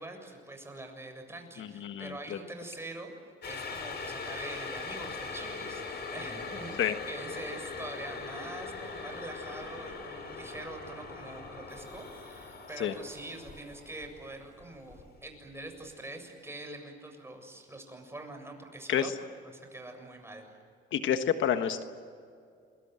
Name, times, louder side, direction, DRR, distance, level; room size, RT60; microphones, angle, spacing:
voice 1, 0.0-3.1 3.4-19.1 19.5-20.5, right 2 dB, 10° right, 4 dB, 7.3 m, -44 dB
voice 2, 1.6-2.4 6.8-6.9 12.8-13.0 18.9-19.2 20.9-21.8, left 9 dB, 75° left, 8 dB, 1.5 m, -29 dB
sound 1, 3.4-15.5 15.8-15.9, left 4 dB, 55° left, 6.3 m, -41 dB
28.5 x 23.0 x 7.7 m, 2.3 s
cardioid pair, 90°, 20 cm